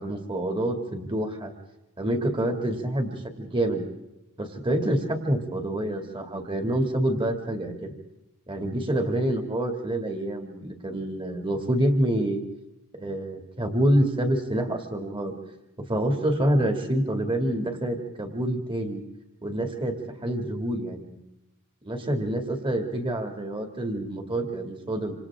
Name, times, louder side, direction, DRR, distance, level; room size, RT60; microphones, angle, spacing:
voice 1, 0.0-1.5 2.0-3.8 4.4-7.9 8.5-12.4 12.9-15.3 15.8-19.0 19.4-21.2 21.8-25.1, right 1 dB, 25° right, 4 dB, 2.5 m, -27 dB
27.0 x 27.0 x 3.7 m, 0.93 s
head